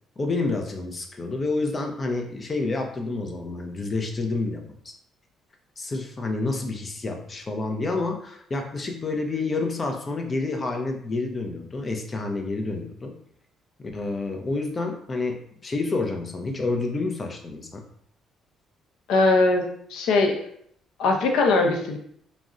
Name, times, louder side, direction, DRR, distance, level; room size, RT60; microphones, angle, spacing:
voice 1, 0.2-4.9 5.8-13.2 13.8-17.8, left 3 dB, 25° left, 3 dB, 0.4 m, -29 dB
voice 2, 19.1-19.6 19.9-20.4 21.0-22.0, left 3 dB, 80° left, 3 dB, 0.5 m, -20 dB
2.4 x 2.0 x 3.6 m, 0.66 s
cardioid pair, 150°, 0 cm